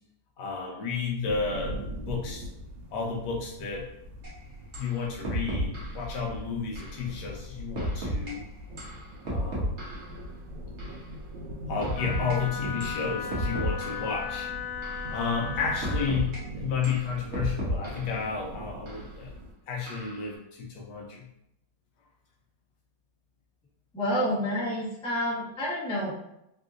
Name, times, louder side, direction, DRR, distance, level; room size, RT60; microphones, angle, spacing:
voice 1, 0.4-2.5 2.9-3.9 4.8-8.4 9.2-9.8 11.7-14.5 15.1-19.3 19.7-21.3, left 5 dB, 75° left, -1 dB, 1.1 m, -32 dB
sound 1, 1.2-19.5, right 1 dB, 80° right, 1.3 m, -41 dB
sound 2, 4.2-4.3 4.7-4.9 5.2-6.0 6.8-7.0 7.8-8.3 8.8-10.1 10.8-11.0 11.8-12.4 12.8-13.0 13.3-14.1 14.8-15.1 15.8-16.4 16.8-18.1 18.9-19.0 19.9-20.2, equal, 45° right, 1.0 m, -32 dB
Wind instrument woodwind instrument, 11.9-16.1, left 7 dB, 90° left, 1.3 m, -36 dB
voice 2, 23.9-26.2, equal, 5° left, -8 dB, 0.4 m, -29 dB
3.5 x 2.5 x 2.5 m, 0.82 s
omnidirectional pair, 2.1 m